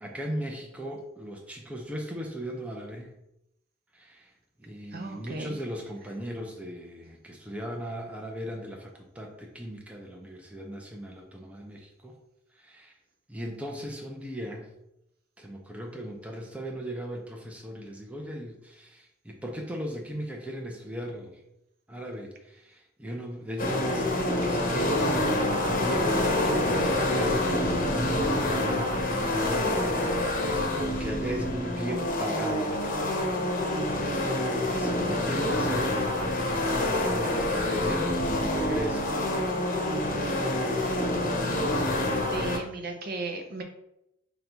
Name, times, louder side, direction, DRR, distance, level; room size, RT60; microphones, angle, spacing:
voice 1, 0.0-3.1 3.9-4.3 4.6-12.1 12.6-12.9 13.3-14.7 15.4-21.4 21.9-25.0 25.5-30.0 30.4-33.3 34.4-36.0 36.5-39.1, equal, 5° right, 1 dB, 0.5 m, -37 dB
voice 2, 4.9-5.6 42.1-43.6, right 3 dB, 50° right, 4 dB, 0.6 m, -36 dB
sound 1, 23.6-42.6, left 1 dB, 45° left, 0.8 m, -27 dB
5.8 x 2.3 x 3.9 m, 0.84 s
head